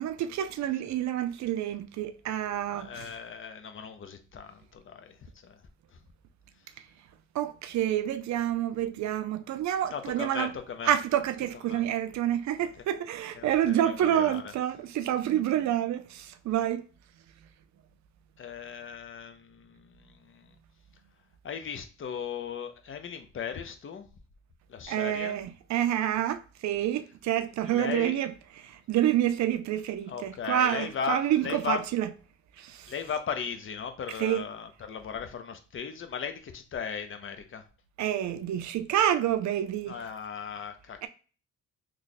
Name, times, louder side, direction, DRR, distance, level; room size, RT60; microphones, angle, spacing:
voice 1, 0.0-3.1 7.3-10.5 10.8-16.8 24.9-32.1 32.6-32.9 34.2-34.4 38.0-40.0 41.0-41.1, right 11 dB, 65° right, 0.5 m, -28 dB
voice 2, 2.7-5.2 5.4-5.6 5.9-6.0 9.9-10.9 11.7-11.8 13.4-14.5 18.4-20.6 21.4-24.1 24.7-25.4 27.6-28.2 30.1-31.8 32.9-37.6 39.9-41.0, left 7 dB, 45° left, 0.7 m, -37 dB
3.1 x 2.3 x 4.0 m
cardioid pair, 90°, 30 cm